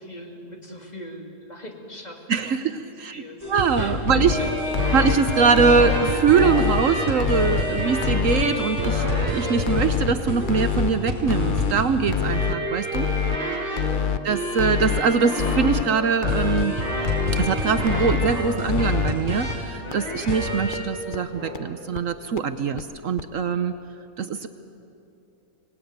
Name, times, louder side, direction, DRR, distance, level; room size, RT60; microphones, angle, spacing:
voice 1, 0.0-2.5 3.1-3.5 3.8-5.0 13.8-14.2, left 1 dB, 25° left, 1 dB, 2.6 m, -40 dB
voice 2, 2.3-3.2 3.5-4.4 4.9-13.1 14.2-16.9 17.3-23.7 24.2-24.5, right 5 dB, 65° right, 10 dB, 1.1 m, -22 dB
sound 1, 3.4-20.9 21.3-21.6, equal, 25° right, 5.0 m, -28 dB
sound 2, 3.9-4.3 4.7-5.2 5.6-6.0 6.4-6.8 7.2-7.6 8.0-8.4 8.8-9.3 9.7-10.1 10.5-10.9 11.3-11.7 12.1-12.6 12.9-13.4 13.8-14.2 14.6-15.0 15.4-15.8 16.2-16.7 17.0-17.5 17.9-18.3 18.7-19.1 19.5-19.6 19.9-20.0 20.3-20.4 20.7-20.8 21.1-21.2 21.5-21.6 22.0-22.1 22.4-22.5 22.8-22.9 23.2-23.3, left 8 dB, 45° left, 0.7 m, -25 dB
25.0 x 19.0 x 9.4 m, 2.8 s
omnidirectional pair, 1.6 m